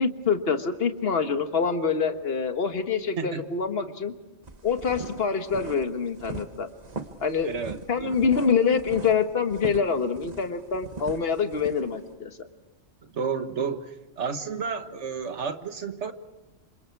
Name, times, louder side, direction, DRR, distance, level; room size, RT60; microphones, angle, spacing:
voice 1, 0.0-4.1 4.6-6.7 7.2-7.5 7.9-12.3, left 5 dB, 55° left, 8 dB, 1.6 m, -25 dB
voice 2, 3.2-3.5 7.4-8.2 13.0-16.1, right 5 dB, 70° right, 9 dB, 1.7 m, -32 dB
sound 1, 4.4-12.1, right 3 dB, 35° right, 1.3 m, -39 dB
28.0 x 26.5 x 4.7 m, 1.1 s
omnidirectional pair, 1.2 m